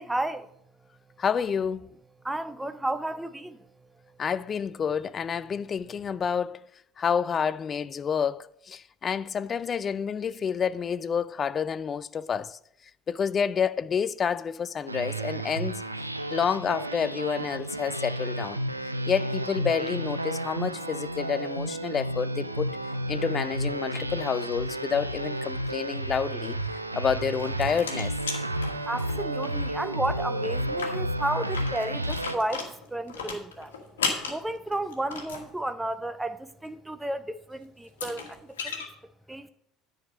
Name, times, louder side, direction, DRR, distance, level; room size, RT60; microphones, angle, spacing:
voice 1, 0.0-1.2 2.2-4.2 28.8-33.7 34.3-38.9 39.3-39.5, right 1 dB, 10° right, 0.6 m, -33 dB
voice 2, 1.2-1.9 4.2-6.6 7.0-12.6 13.1-15.8 16.3-18.6 19.1-22.8 23.1-26.6 26.9-28.1, left 7 dB, 35° left, 0.3 m, -29 dB
sound 1, 14.9-32.4, right 1 dB, 90° right, 0.4 m, -32 dB
sound 2, 27.2-29.5 29.8-29.9 30.2-30.3 30.6-35.5 37.3-37.4 37.8-38.9, left 5 dB, 70° left, 1.3 m, -35 dB
10.0 x 5.0 x 5.9 m
figure-of-eight pair, 65°, 0 cm